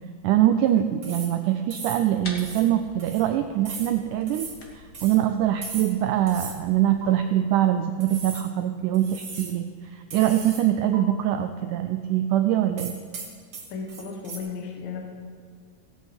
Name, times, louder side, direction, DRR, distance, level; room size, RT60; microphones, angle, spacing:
voice 1, 0.2-13.0, right 12 dB, 85° right, 8 dB, 1.8 m, -23 dB
sound 1, 1.0-1.4 1.7-2.1 2.4-2.7 3.0-3.3 3.6-3.9 4.3-4.6 4.9-5.2 5.6-6.0 6.3-6.6 7.0-7.1 8.0-8.5 8.9-9.6 10.1-10.7 10.9-11.0 12.8-14.4, right 4 dB, 45° right, 1.5 m, -38 dB
sound 2, 2.1-7.2, left 2 dB, 50° left, 1.2 m, -46 dB
voice 2, 13.7-15.0, left 5 dB, 75° left, 1 dB, 3.2 m, -34 dB
17.5 x 8.2 x 5.3 m, 2.1 s
omnidirectional pair, 4.2 m